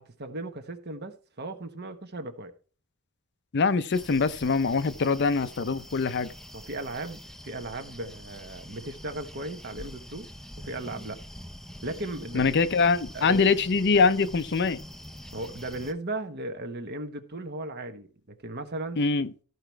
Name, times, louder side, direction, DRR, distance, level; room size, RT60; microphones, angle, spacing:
voice 1, 0.0-2.5 6.5-10.3 10.6-11.2 11.8-12.5 12.8-13.5 15.3-19.0, right 2 dB, 50° right, 1.2 m, -36 dB
voice 2, 3.5-6.3 12.3-14.8 19.0-19.3, left 4 dB, 50° left, 0.5 m, -23 dB
sound 1, 3.9-15.9, equal, ahead, 0.5 m, -45 dB
13.5 x 4.9 x 4.5 m
head